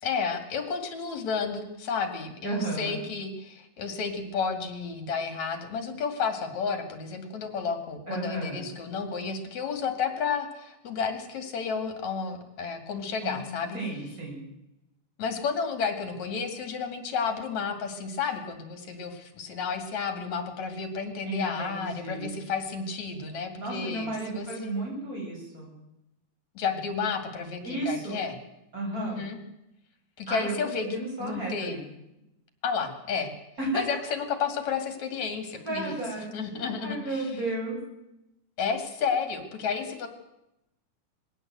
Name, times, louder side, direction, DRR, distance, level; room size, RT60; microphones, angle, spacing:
voice 1, 0.0-13.8 15.2-24.7 26.5-28.4 28.9-29.4 30.2-30.9 31.2-31.8 32.6-33.3 33.7-35.9 36.3-37.3 38.6-40.1, left 5 dB, 60° left, 7 dB, 3.4 m, -31 dB
voice 2, 2.4-3.0 8.1-8.7 13.2-13.4 13.7-14.4 21.3-22.4 23.6-25.7 27.6-28.2 28.7-29.3 30.3-31.8 33.6-33.8 35.5-37.8, right 2 dB, 25° right, -2 dB, 8.4 m, -33 dB
21.5 x 16.5 x 8.0 m, 0.89 s
omnidirectional pair, 3.7 m